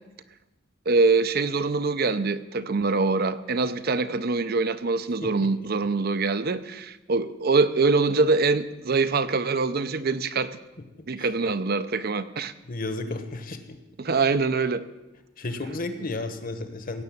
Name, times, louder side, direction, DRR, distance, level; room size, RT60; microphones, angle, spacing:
voice 1, 0.9-10.5 11.1-12.5 14.0-14.8, right 3 dB, 50° right, 12 dB, 0.6 m, -24 dB
voice 2, 12.7-13.6 15.4-17.0, left 2 dB, 45° left, 9 dB, 1.3 m, -33 dB
17.0 x 6.8 x 8.5 m, 1.1 s
head